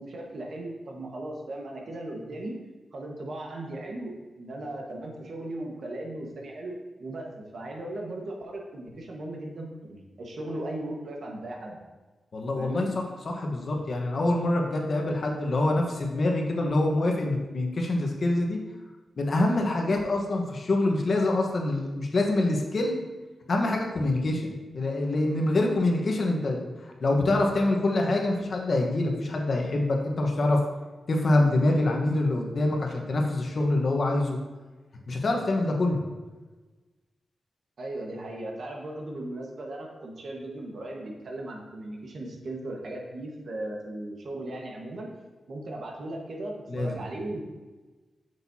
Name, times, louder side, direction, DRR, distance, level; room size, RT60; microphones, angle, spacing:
voice 1, 0.0-2.5 2.9-11.8 12.6-12.9 37.8-45.1 45.5-47.4, right 1 dB, 55° right, 0 dB, 1.5 m, -37 dB
voice 2, 12.3-18.6 19.2-23.0 23.5-24.5 24.7-30.6 31.1-34.4 35.1-36.0 46.7-46.9, left 2 dB, 45° left, 1 dB, 1.2 m, -25 dB
8.3 x 6.7 x 2.8 m, 1.2 s
wide cardioid pair, 145°, 0 cm